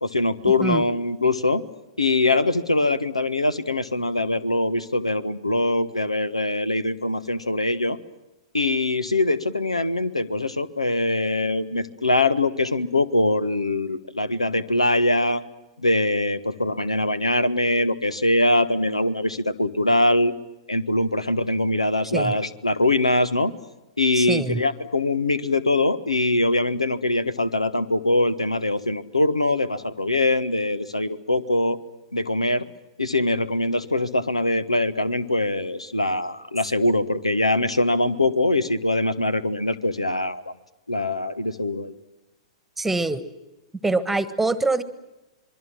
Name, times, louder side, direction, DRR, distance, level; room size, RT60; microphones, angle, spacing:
voice 1, 0.0-1.6 2.0-8.0 8.5-15.4 15.8-20.3 20.7-23.5 24.0-31.8 32.1-32.6 33.0-40.5 40.9-41.9, left 2 dB, 85° left, 16 dB, 1.4 m, -23 dB
voice 2, 24.2-24.6 42.8-43.2 43.8-44.8, right 3 dB, 5° right, 15 dB, 1.5 m, -24 dB
26.5 x 22.5 x 7.6 m, 0.99 s
figure-of-eight pair, 105°, 3 cm